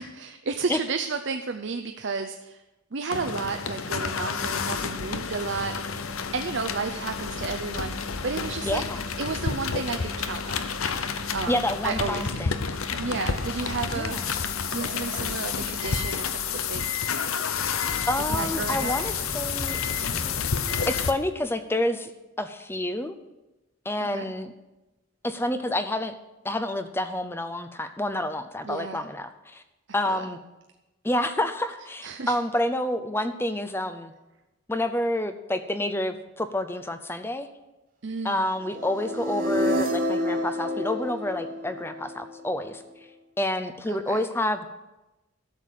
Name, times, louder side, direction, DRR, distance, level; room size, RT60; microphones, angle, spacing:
voice 1, 0.0-2.6 2.9-5.7 6.1-8.9 9.2-10.6 11.3-11.6 11.8-12.4 13.0-14.2 14.7-16.9 18.2-18.9 24.0-24.2 28.6-29.0 30.1-30.2 32.0-32.4 38.0-38.5 43.9-44.2, right 4 dB, 55° right, 6 dB, 0.6 m, -32 dB
sound 1, 3.1-21.1, left 6 dB, 80° left, 0.8 m, -30 dB
voice 2, 8.6-9.0 11.5-12.5 13.9-14.3 18.1-19.8 20.9-22.1 22.4-23.1 23.8-24.5 25.2-26.1 26.4-29.6 29.9-30.4 31.0-34.1 34.7-37.5 38.2-42.8 43.4-44.7, left 1 dB, 10° left, 10 dB, 0.6 m, -28 dB
sound 2, 17.8-21.5, equal, 35° left, 1.1 m, -39 dB
sound 3, 38.7-42.7, equal, 40° right, 1.1 m, -29 dB
12.5 x 6.8 x 7.4 m, 1.0 s
head